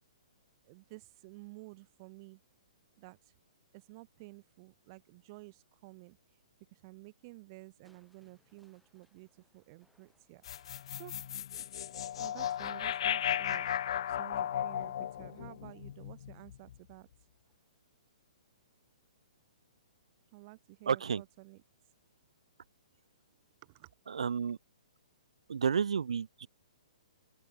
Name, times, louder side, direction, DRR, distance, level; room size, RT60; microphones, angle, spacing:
voice 1, 0.6-2.4 3.0-3.3 3.7-6.4 6.7-11.1 12.2-13.7 14.0-17.3 20.3-21.6 23.6-23.9, right 25 dB, 35° right, 0.8 m, -53 dB
Crushing, 7.8-15.8 17.4-17.9 18.4-18.5, equal, ahead, 5.5 m, -77 dB
sound 1, 10.4-16.8, left 10 dB, 55° left, 0.4 m, -35 dB
voice 2, 20.9-21.2 24.2-24.6 25.5-26.5, right 6 dB, 65° right, 0.4 m, -31 dB
open air
figure-of-eight pair, 120°, 4 cm